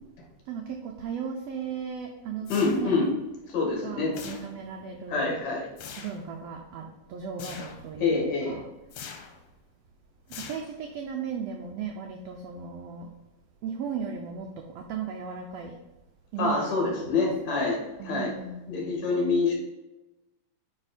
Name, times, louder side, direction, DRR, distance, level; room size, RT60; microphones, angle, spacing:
voice 1, 0.5-2.5 2.8-3.0 3.8-5.4 6.0-8.6 10.4-13.1 13.6-15.7 16.3-17.3 18.0-18.8, right 6 dB, 85° right, 3 dB, 1.4 m, -36 dB
sound 1, 2.5-3.1 4.1-4.8 5.8-6.3 7.4-7.9 8.9-9.4 10.3-11.0, left 7 dB, 85° left, 2.3 m, -43 dB
voice 2, 2.5-3.1 3.5-4.1 5.1-5.7 8.0-8.6 16.4-18.3 18.7-19.5, left 3 dB, 60° left, -2 dB, 2.9 m, -26 dB
9.0 x 3.6 x 4.2 m, 1.0 s
omnidirectional pair, 3.7 m